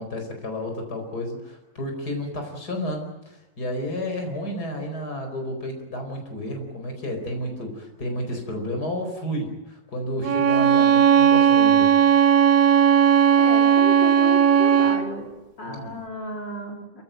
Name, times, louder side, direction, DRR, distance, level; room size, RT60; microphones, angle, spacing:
voice 1, 0.0-11.9 15.6-15.9, left 1 dB, 60° left, 4 dB, 5.1 m, -31 dB
Bowed string instrument, 10.2-15.1, right 8 dB, 75° right, 1.7 m, -17 dB
voice 2, 13.3-15.3 15.6-17.0, left 2 dB, 85° left, 0 dB, 4.4 m, -33 dB
27.0 x 16.0 x 9.2 m, 0.97 s
omnidirectional pair, 1.9 m